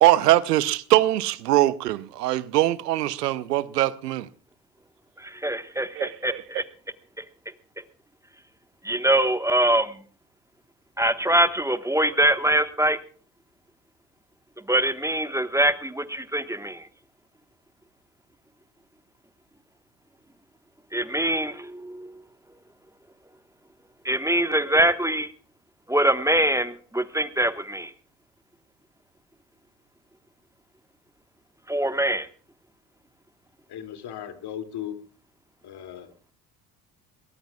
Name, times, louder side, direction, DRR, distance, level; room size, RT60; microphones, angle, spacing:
voice 1, 0.0-4.3 6.0-6.1, right 15 dB, 85° right, 0.9 m, -21 dB
voice 2, 5.2-6.6 7.2-7.3 8.8-10.0 11.0-13.0 14.6-16.9 20.9-22.2 24.0-25.3 25.9-27.9 31.7-32.3, right 1 dB, 5° right, 1.4 m, -23 dB
voice 3, 33.7-35.0 35.6-36.1, left 10 dB, 55° left, 2.7 m, -36 dB
22.0 x 19.0 x 2.4 m
hypercardioid pair, 60°, 46 cm